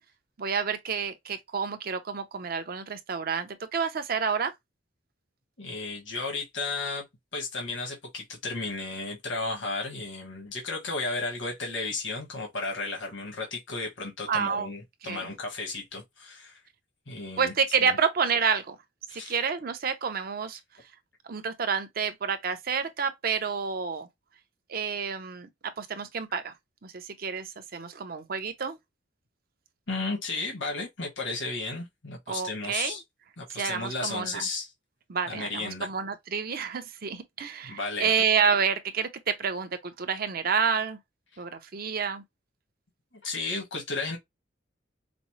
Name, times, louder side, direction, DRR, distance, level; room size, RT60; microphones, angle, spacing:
voice 1, 0.4-4.5 14.3-14.7 15.0-15.3 17.4-18.8 19.3-20.6 21.3-24.1 24.7-25.5 25.8-26.5 26.8-28.8 32.3-33.0 33.5-34.4 35.1-41.0 41.4-42.2, right 6 dB, 50° right, 0.6 m, -29 dB
voice 2, 5.6-7.1 7.3-16.6 17.1-17.5 17.8-18.0 19.1-19.3 29.9-33.0 33.4-34.7 35.3-35.9 37.6-38.1 43.2-44.2, left 3 dB, 80° left, 1.2 m, -34 dB
5.1 x 2.0 x 2.9 m
head